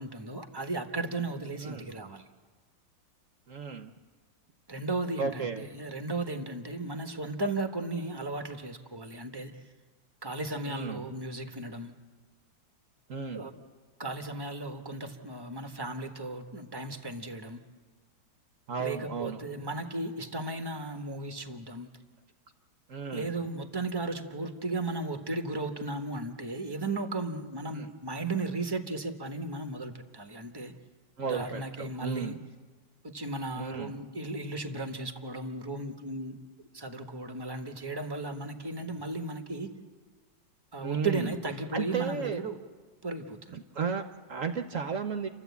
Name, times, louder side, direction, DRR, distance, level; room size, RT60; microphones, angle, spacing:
voice 1, 0.0-2.3 4.7-9.6 10.2-11.9 13.3-13.5 14.0-17.6 18.8-21.9 23.1-30.7 31.2-32.4 33.0-36.4 36.7-39.7 40.7-42.6 43.0-43.6, right 2 dB, 15° right, 5 dB, 1.0 m, -35 dB
voice 2, 1.6-1.9 3.5-3.9 5.2-5.7 10.7-11.1 13.1-13.5 18.7-19.4 22.9-23.3 27.7-27.9 31.2-32.4 33.5-34.0 40.8-41.3 41.7-42.4 43.5-45.3, right 5 dB, 55° right, 7 dB, 1.0 m, -34 dB
30.0 x 12.0 x 8.3 m, 1.4 s
omnidirectional pair, 2.0 m